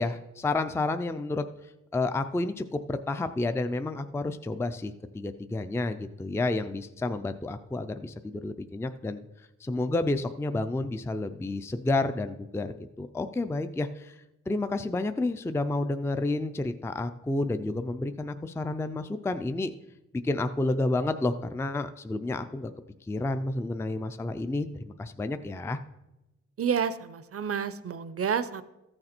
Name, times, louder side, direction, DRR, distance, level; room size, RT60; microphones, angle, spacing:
voice 1, 0.0-1.4 1.9-9.2 9.6-14.1 14.5-19.7 20.2-22.7 23.1-25.8, left 2 dB, 10° left, 9 dB, 0.4 m, -30 dB
voice 2, 26.6-28.6, right 7 dB, 50° right, 14 dB, 0.5 m, -29 dB
14.0 x 6.6 x 4.3 m, 0.97 s
wide cardioid pair, 100°, 30 cm